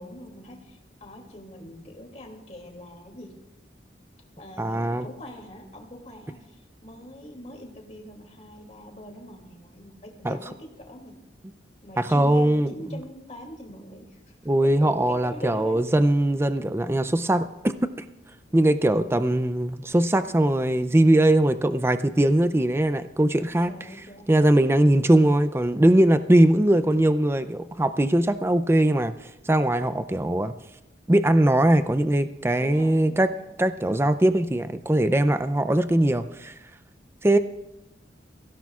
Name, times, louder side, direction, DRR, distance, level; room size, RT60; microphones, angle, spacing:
voice 1, 0.0-3.4 4.4-11.2 11.8-14.2 14.6-15.9 22.5-22.6 23.6-24.3 32.5-33.5, left 1 dB, 40° left, 1 dB, 2.6 m, -43 dB
voice 2, 4.6-5.0 10.2-10.4 12.0-12.7 14.5-17.5 18.5-23.7 24.3-29.1 29.5-30.5 31.1-33.3 33.6-36.5 37.2-37.4, right 1 dB, 15° right, 11 dB, 0.4 m, -21 dB
22.5 x 16.5 x 2.4 m, 0.95 s
head